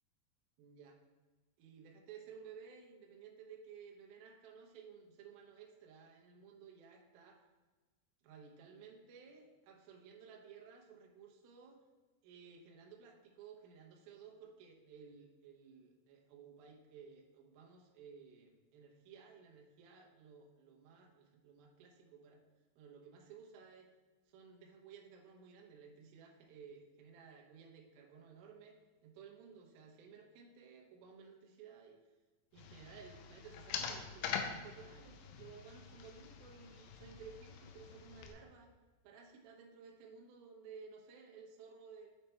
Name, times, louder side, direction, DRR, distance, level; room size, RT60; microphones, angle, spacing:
voice 1, 0.6-0.9 1.6-7.4 8.2-11.8 12.2-22.4 22.8-23.9 24.3-28.8 29.0-32.0 32.5-38.7 39.0-42.1, right 6 dB, 80° right, 0 dB, 2.2 m, -56 dB
sound 1, 32.6-38.3, left 7 dB, 90° left, 3.0 m, -45 dB
8.2 x 3.3 x 4.4 m, 1.3 s
omnidirectional pair, 5.3 m